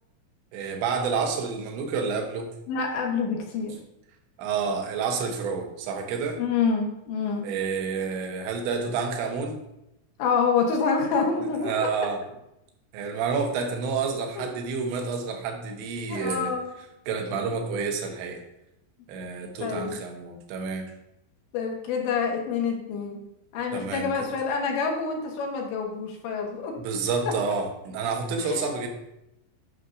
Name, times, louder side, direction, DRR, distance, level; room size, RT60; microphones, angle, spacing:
voice 1, 0.5-2.5 4.4-6.4 7.4-9.6 11.6-12.2 12.9-16.5 17.1-18.4 19.1-20.9 23.7-24.1 26.8-28.9, right 5 dB, 80° right, 4 dB, 3.2 m, -29 dB
voice 2, 2.7-3.8 6.4-7.5 10.2-11.9 14.4-14.6 16.1-16.7 19.6-20.0 21.5-23.2 23.5-26.7 28.4-28.7, left 5 dB, 75° left, 1 dB, 3.3 m, -27 dB
11.0 x 6.2 x 2.5 m, 0.85 s
omnidirectional pair, 5.3 m